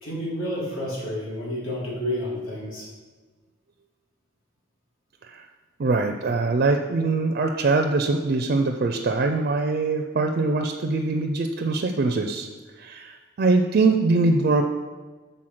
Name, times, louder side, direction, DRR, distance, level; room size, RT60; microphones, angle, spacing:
voice 1, 0.0-2.9, equal, 70° left, -5 dB, 2.3 m, -30 dB
voice 2, 5.8-12.5 12.8-14.6, right 3 dB, 45° right, 4 dB, 0.4 m, -23 dB
6.3 x 4.1 x 5.8 m, 1.4 s
head